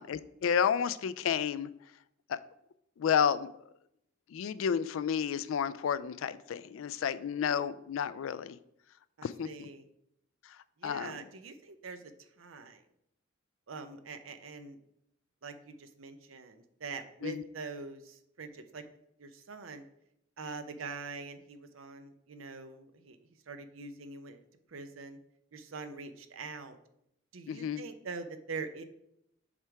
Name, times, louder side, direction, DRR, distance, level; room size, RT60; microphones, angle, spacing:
voice 1, 0.0-1.7 2.3-2.4 3.0-3.5 4.3-8.6 9.2-9.7 10.8-11.1 17.2-17.4 27.5-27.8, left 7 dB, 85° left, 15 dB, 0.3 m, -31 dB
voice 2, 9.2-9.9 10.8-12.8 13.7-14.8 15.4-18.8 19.2-19.9 20.4-23.2 23.5-24.4 24.7-25.2 25.5-26.8 27.3-28.8, right 4 dB, 90° right, 8 dB, 0.7 m, -44 dB
7.2 x 3.4 x 4.7 m, 0.77 s
head